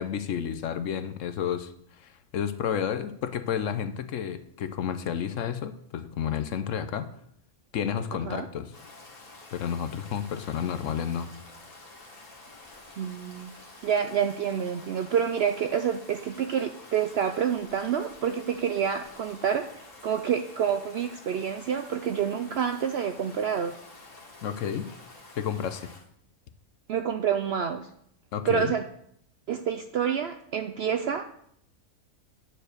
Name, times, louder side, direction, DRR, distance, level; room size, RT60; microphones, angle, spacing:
voice 1, 0.0-7.1 7.7-8.8 9.5-11.3 24.4-24.9 25.4-25.9 28.3-28.7, left 8 dB, 65° left, 10 dB, 0.9 m, -31 dB
Stream, 8.7-26.0, left 2 dB, 25° left, 1.7 m, -49 dB
voice 2, 13.0-13.5 13.8-19.7 20.0-23.7 26.9-27.9 28.5-28.8 29.5-31.3, right 8 dB, 70° right, 7 dB, 0.6 m, -28 dB
9.9 x 4.5 x 6.5 m, 0.70 s
omnidirectional pair, 1.5 m